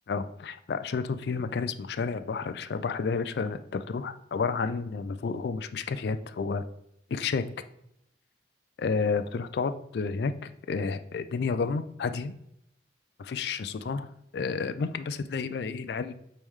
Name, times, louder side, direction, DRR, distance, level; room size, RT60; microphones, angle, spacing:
voice 1, 0.1-6.6 7.1-7.4 8.8-12.3 13.2-16.1, left 5 dB, 60° left, 11 dB, 0.3 m, -31 dB
8.4 x 3.2 x 3.6 m, 0.78 s
head